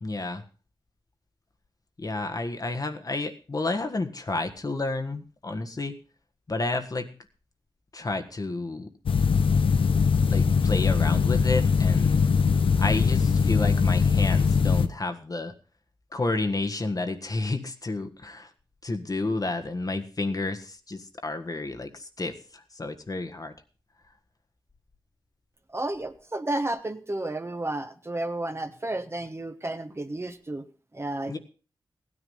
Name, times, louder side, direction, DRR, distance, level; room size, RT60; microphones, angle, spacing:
voice 1, 0.0-0.4 2.0-5.9 6.5-7.1 7.9-8.9 10.3-12.2 12.8-15.5 16.1-18.5 18.8-23.5 31.3-31.4, left 2 dB, 45° left, 7 dB, 1.5 m, -30 dB
sound 1, 9.1-14.9, left 5 dB, 80° left, 0.9 m, -21 dB
voice 2, 25.7-30.6 30.9-31.4, right 2 dB, 30° right, 8 dB, 1.2 m, -32 dB
15.5 x 9.9 x 5.4 m, 0.37 s
cardioid pair, 45°, 9 cm